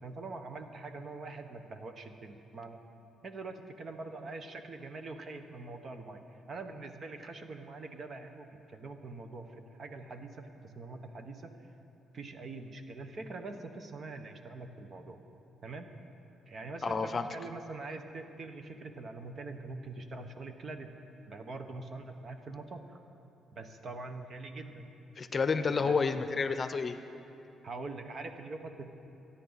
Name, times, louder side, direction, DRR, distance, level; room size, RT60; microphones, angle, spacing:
voice 1, 0.0-2.8 3.2-11.5 12.1-15.2 15.6-15.9 16.5-20.9 21.3-23.0 23.5-24.9 25.7-26.0 27.6-28.9, right 3 dB, 45° right, 6 dB, 1.3 m, -44 dB
voice 2, 16.8-17.3 25.2-27.0, left 5 dB, 35° left, 10 dB, 0.7 m, -30 dB
26.5 x 10.0 x 4.1 m, 2.8 s
cardioid pair, 90°, 0 cm